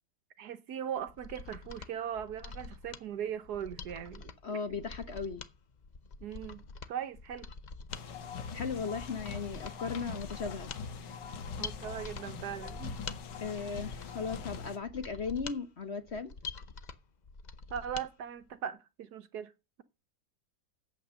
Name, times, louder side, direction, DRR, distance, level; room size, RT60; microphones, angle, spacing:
voice 1, 0.4-4.3 6.2-6.6 6.9-7.5 11.6-13.0 17.7-19.5, right 9 dB, 65° right, 1.3 m, -39 dB
Mechanisms, 1.0-18.1 18.4-18.5, left 4 dB, 65° left, 0.4 m, -46 dB
voice 2, 4.4-5.4 8.5-10.7 13.4-16.3, left 5 dB, 45° left, 1.1 m, -37 dB
sound 1, 7.9-14.8, left 6 dB, 80° left, 1.8 m, -42 dB
8.5 x 8.3 x 6.3 m
omnidirectional pair, 1.9 m